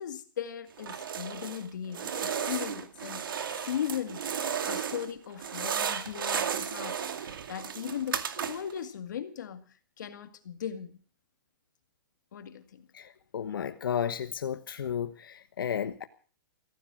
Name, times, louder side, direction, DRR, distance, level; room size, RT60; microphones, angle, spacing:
voice 1, 0.0-4.2 4.6-11.0 12.3-12.9, left 9 dB, 60° left, 9 dB, 2.1 m, -38 dB
sound 1, 0.8-1.6 1.9-5.1 5.4-8.8, right 7 dB, 80° right, 2.2 m, -34 dB
voice 2, 12.9-16.0, left 8 dB, 90° left, 9 dB, 1.3 m, -33 dB
15.5 x 14.5 x 6.3 m, 0.41 s
hypercardioid pair, 180°, 11 cm